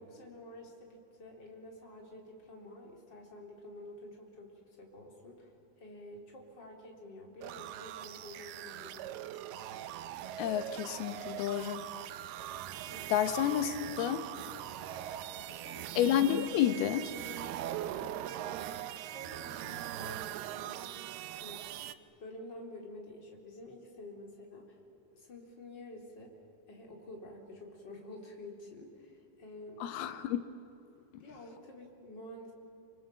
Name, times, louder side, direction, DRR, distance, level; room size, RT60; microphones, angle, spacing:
voice 1, 0.0-4.5 4.8-5.5 5.8-9.6 12.9-13.1 15.3-15.9 17.8-18.8 19.1-21.8 22.2-24.8 25.1-26.3 26.7-29.9 31.2-32.5, left 1 dB, 30° left, 0 dB, 4.1 m, -50 dB
sound 1, 7.4-21.9, right 12 dB, 90° right, 2.8 m, -41 dB
voice 2, 10.4-11.9 13.1-14.3 15.9-17.1 29.8-30.4, left 10 dB, 90° left, 9 dB, 3.1 m, -30 dB
28.0 x 26.5 x 7.6 m, 2.8 s
omnidirectional pair, 4.4 m